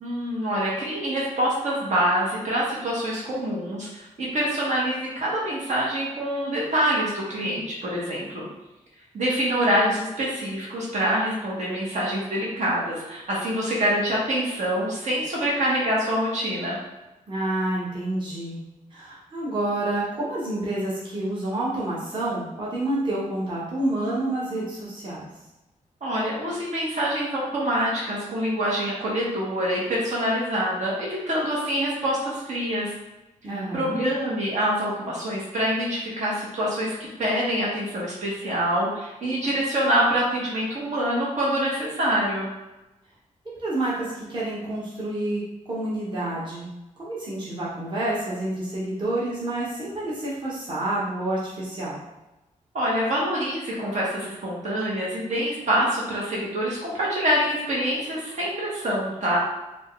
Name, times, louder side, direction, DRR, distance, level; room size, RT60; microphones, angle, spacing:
voice 1, 0.0-8.4 9.1-16.8 26.0-32.9 33.7-42.5 52.7-59.4, equal, 60° right, -5 dB, 1.3 m, -25 dB
voice 2, 17.3-18.6 18.9-25.3 33.4-34.0 43.6-45.4 45.7-46.7 47.0-52.0, right 1 dB, 35° right, -7 dB, 1.1 m, -28 dB
4.5 x 2.5 x 3.1 m, 0.98 s
wide cardioid pair, 145°, 13 cm